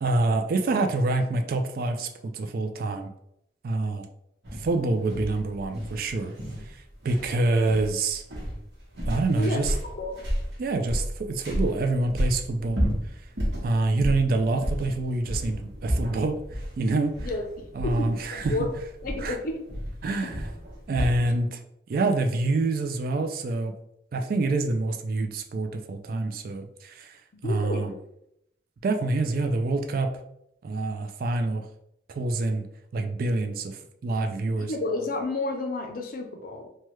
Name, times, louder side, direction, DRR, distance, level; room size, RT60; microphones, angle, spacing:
voice 1, 0.0-3.1 3.6-4.1 4.6-6.3 6.7-8.2 9.1-9.7 10.6-12.8 13.6-17.3 17.7-18.7 19.2-19.4 20.0-20.5 20.9-21.6 21.9-23.7 24.1-27.9 28.8-30.1 30.6-31.6 32.1-32.6 32.9-34.7, right 2 dB, 50° right, 6 dB, 0.3 m, -26 dB
sound 1, 4.4-21.3, equal, 70° right, 1.1 m, -32 dB
voice 2, 17.2-18.7 19.0-19.7 20.2-20.3 27.4-27.9 34.4-36.7, left 2 dB, 50° left, 4 dB, 0.5 m, -31 dB
3.1 x 2.2 x 3.0 m, 0.78 s
head